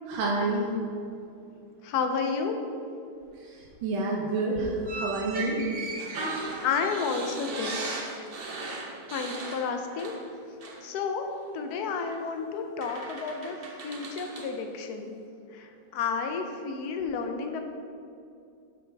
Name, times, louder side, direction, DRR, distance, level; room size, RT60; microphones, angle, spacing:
voice 1, 0.0-0.7 3.4-5.6, right 2 dB, 85° right, -3 dB, 1.7 m, -29 dB
voice 2, 1.8-2.6 6.6-7.8 9.1-10.1 10.8-11.3 11.5-15.2 15.5-17.6, left 5 dB, 65° left, 5 dB, 1.0 m, -31 dB
sound 1, 4.8-10.3 10.6-10.8 12.1-12.2 12.8-14.5, right 2 dB, 50° right, 0.6 m, -37 dB
11.5 x 5.0 x 3.4 m, 2.5 s
omnidirectional pair, 2.1 m